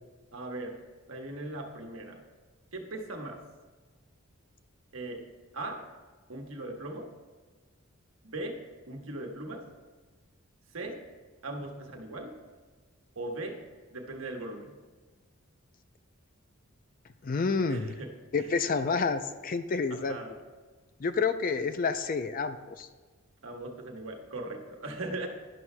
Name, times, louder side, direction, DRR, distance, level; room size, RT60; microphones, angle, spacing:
voice 1, 0.3-0.8 1.1-2.2 2.7-3.4 4.9-5.3 5.5-5.9 6.3-7.1 8.2-9.7 10.7-11.0 11.4-12.4 13.1-13.6 13.9-14.8 17.7-18.6 19.9-20.4 23.4-25.3, right 2 dB, 75° right, 2 dB, 1.2 m, -39 dB
voice 2, 17.2-17.9 18.3-20.2 21.0-22.9, left 4 dB, 40° left, 10 dB, 0.4 m, -29 dB
12.0 x 11.0 x 2.2 m, 1.4 s
head